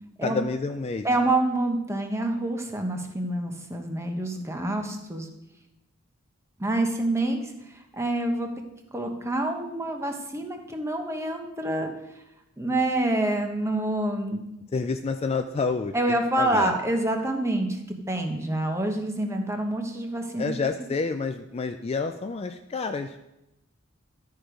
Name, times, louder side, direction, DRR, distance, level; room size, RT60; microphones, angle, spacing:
voice 1, 0.2-1.1 14.7-16.8 20.4-23.2, left 4 dB, 30° left, 7 dB, 0.4 m, -29 dB
voice 2, 1.0-5.3 6.6-7.4 7.7-8.5 8.9-11.9 12.6-14.4 15.9-20.5, right 1 dB, 15° right, 4 dB, 1.0 m, -27 dB
12.0 x 4.7 x 5.1 m, 0.89 s
head